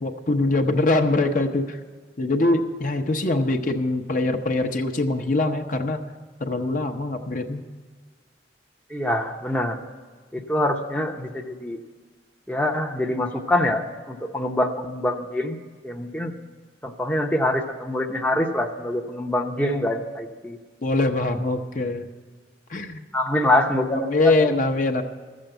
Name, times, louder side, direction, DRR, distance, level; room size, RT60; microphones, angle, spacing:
voice 1, 0.0-1.8 2.2-6.0 6.4-7.6 20.8-22.1 22.7-23.0 24.0-25.0, left 2 dB, 45° left, 5 dB, 0.8 m, -23 dB
voice 2, 8.9-9.8 10.3-11.8 12.5-15.6 15.8-16.3 16.8-20.6 23.1-24.6, left 1 dB, 10° left, 1 dB, 0.7 m, -25 dB
14.0 x 7.4 x 7.8 m, 1.5 s
head